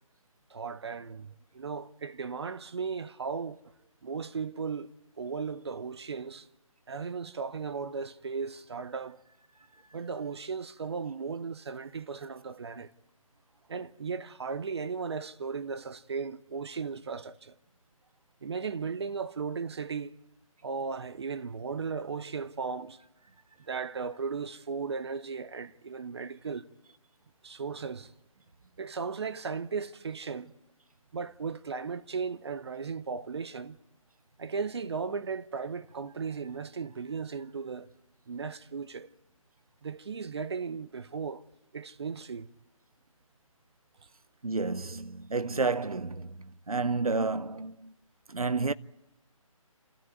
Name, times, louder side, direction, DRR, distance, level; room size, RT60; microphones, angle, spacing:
voice 1, 0.5-3.6 4.0-4.9 5.2-6.5 6.9-9.2 9.9-12.9 13.7-17.5 18.4-20.1 20.6-23.0 23.7-26.7 27.4-28.1 28.8-30.5 31.1-33.8 34.4-37.9 38.3-39.1 39.8-41.4 41.7-42.5, right 5 dB, 50° right, 0.7 m, -36 dB
voice 2, 44.4-47.9 48.3-48.7, right 3 dB, 85° right, 0.7 m, -30 dB
28.5 x 13.5 x 9.4 m
figure-of-eight pair, 150°, 18 cm